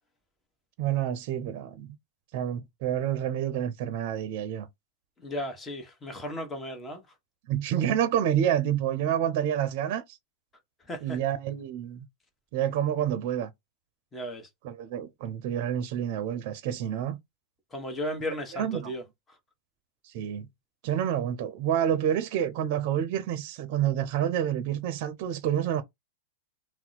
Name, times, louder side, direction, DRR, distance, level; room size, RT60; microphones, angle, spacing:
voice 1, 0.8-2.0 2.3-4.7 7.5-10.0 11.0-12.1 12.5-13.5 14.6-17.2 18.3-18.9 20.1-20.5 20.8-25.8, right 10 dB, 55° right, 0.5 m, -28 dB
voice 2, 5.2-7.0 10.9-11.2 14.1-14.5 17.7-19.0, equal, 20° left, 1.2 m, -35 dB
2.8 x 2.1 x 4.0 m
hypercardioid pair, 115°, 0 cm